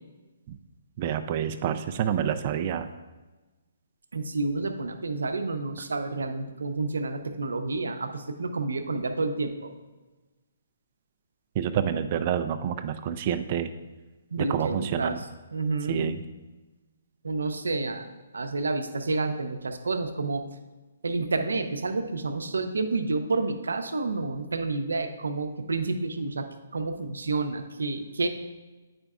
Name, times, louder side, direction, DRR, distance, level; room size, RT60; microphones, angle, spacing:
voice 1, 1.0-2.9 11.6-13.7 14.4-15.2 15.9-16.2, right 9 dB, 35° right, 10 dB, 0.3 m, -28 dB
voice 2, 4.1-9.7 14.3-15.2 15.5-16.1 17.2-20.4 21.0-26.5 26.7-28.3, right 3 dB, 90° right, 7 dB, 0.6 m, -29 dB
8.7 x 5.0 x 2.4 m, 1.2 s
hypercardioid pair, 150°, 0 cm